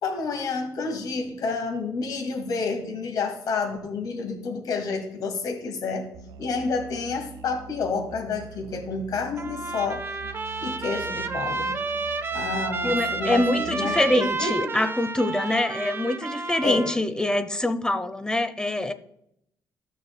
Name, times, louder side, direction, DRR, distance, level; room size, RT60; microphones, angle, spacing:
voice 1, 0.0-6.1 6.4-10.0 10.6-11.8 12.3-14.7 16.6-16.9, left 4 dB, 70° left, 3 dB, 2.2 m, -29 dB
Musical instrument, 6.1-14.1, right 7 dB, 90° right, 0.9 m, -44 dB
Trumpet, 9.4-17.0, right 3 dB, 35° right, 0.9 m, -30 dB
voice 2, 12.8-18.9, left 1 dB, 10° left, 11 dB, 0.8 m, -25 dB
13.0 x 6.6 x 2.3 m, 0.75 s
cardioid pair, 90°, 7 cm